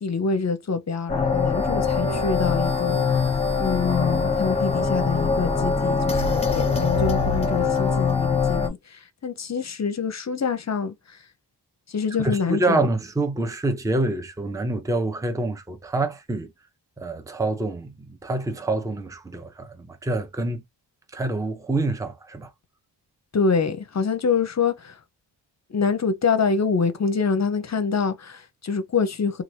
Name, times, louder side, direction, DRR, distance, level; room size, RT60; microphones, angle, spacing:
voice 1, 0.0-11.2 11.9-12.9 23.3-25.0 25.7-29.4, left 5 dB, 40° left, 0.7 m, -26 dB
sound 1, 1.1-8.7, left 4 dB, 15° left, 1.0 m, -23 dB
voice 2, 12.2-16.5 17.0-20.6 21.1-22.5, right 2 dB, 10° right, 0.7 m, -26 dB
2.9 x 2.4 x 3.1 m
cardioid pair, 50°, 43 cm